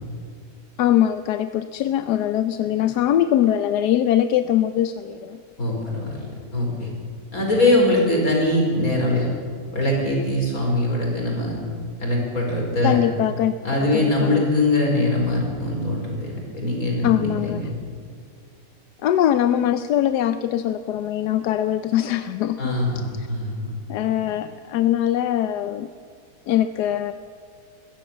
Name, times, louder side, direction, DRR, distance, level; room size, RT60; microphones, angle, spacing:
voice 1, 0.8-5.4 12.8-13.5 13.9-14.4 17.0-17.6 19.0-23.3 23.9-25.9 26.5-27.1, left 11 dB, 70° left, 10 dB, 1.1 m, -22 dB
voice 2, 5.6-6.9 7.3-9.3 9.7-11.6 12.0-13.0 13.6-17.7 22.6-23.7, left 1 dB, 50° left, -1 dB, 5.3 m, -22 dB
22.0 x 16.0 x 7.3 m, 2.1 s
omnidirectional pair, 1.9 m